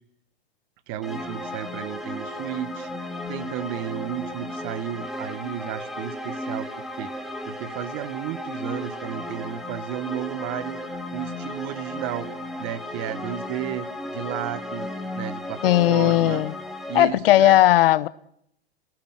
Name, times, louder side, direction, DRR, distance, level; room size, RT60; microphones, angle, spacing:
voice 1, 0.9-6.7 7.0-10.8 11.1-12.3 12.6-14.9 15.1-16.4 16.9-17.6, right 11 dB, 40° right, 1.5 m, -33 dB
sound 1, 1.0-17.0, left 1 dB, ahead, 2.5 m, -34 dB
voice 2, 15.6-16.5 16.9-18.1, left 15 dB, 60° left, 1.0 m, -17 dB
28.0 x 19.0 x 7.6 m
hypercardioid pair, 125°, 31 cm